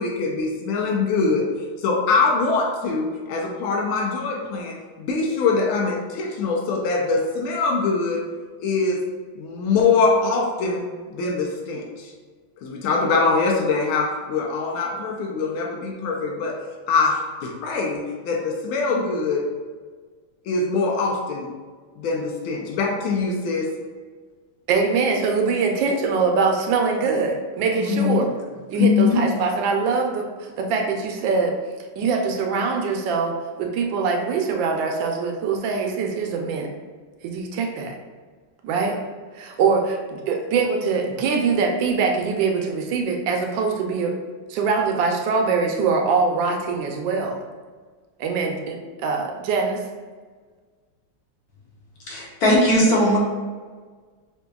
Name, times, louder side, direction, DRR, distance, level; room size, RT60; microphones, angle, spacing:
voice 1, 0.0-1.5 1.8-8.2 8.6-9.0 9.4-10.8 11.1-12.1 12.6-16.6 16.9-19.4 20.5-21.5 22.0-23.7 27.7-28.2 28.8-29.5, left 4 dB, 90° left, 0 dB, 1.4 m, -23 dB
voice 2, 24.7-28.3 28.7-31.5 32.0-36.7 37.2-38.0 38.6-39.0 39.3-44.1 44.5-47.4 48.2-49.9, right 4 dB, 75° right, 2 dB, 1.2 m, -23 dB
voice 3, 52.1-53.2, equal, 60° left, -5 dB, 1.2 m, -18 dB
5.0 x 2.6 x 2.3 m, 1.5 s
omnidirectional pair, 2.2 m